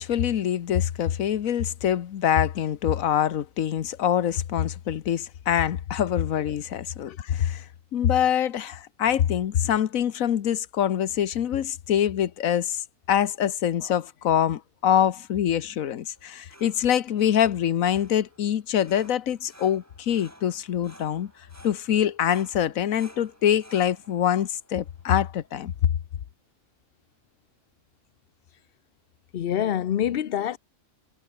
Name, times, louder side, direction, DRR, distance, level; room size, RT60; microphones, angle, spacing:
voice 1, 0.0-7.6 7.9-12.8 13.1-21.3 21.6-25.7, left 10 dB, 85° left, 1.3 m, -24 dB
sound 1, 16.1-25.9, right 1 dB, 10° right, 4.3 m, -53 dB
voice 2, 29.3-30.6, left 10 dB, 55° left, 0.8 m, -26 dB
omnidirectional pair, 1.4 m